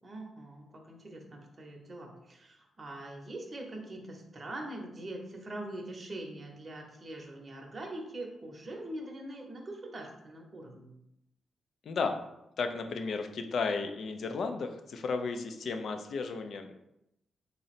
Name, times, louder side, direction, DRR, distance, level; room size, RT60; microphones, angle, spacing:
voice 1, 0.0-10.9, right 1 dB, 35° right, 1 dB, 0.8 m, -43 dB
voice 2, 11.9-12.2 12.6-16.8, left 4 dB, 65° left, 6 dB, 0.4 m, -34 dB
3.8 x 2.0 x 4.0 m, 0.85 s
cardioid pair, 80°, 0 cm